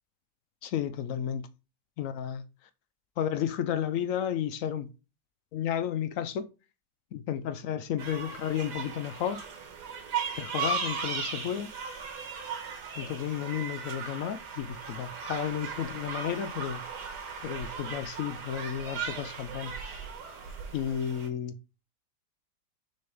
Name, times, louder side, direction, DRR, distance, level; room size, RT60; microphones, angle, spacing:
voice 1, 0.6-1.5 2.0-2.4 3.2-4.9 5.5-6.5 7.1-9.4 10.4-11.7 12.9-16.8 17.4-19.7 20.7-21.5, left 9 dB, 75° left, 0.7 m, -32 dB
sound 1, 8.0-21.3, right 5 dB, 70° right, 1.7 m, -37 dB
6.4 x 4.3 x 3.4 m
omnidirectional pair, 1.9 m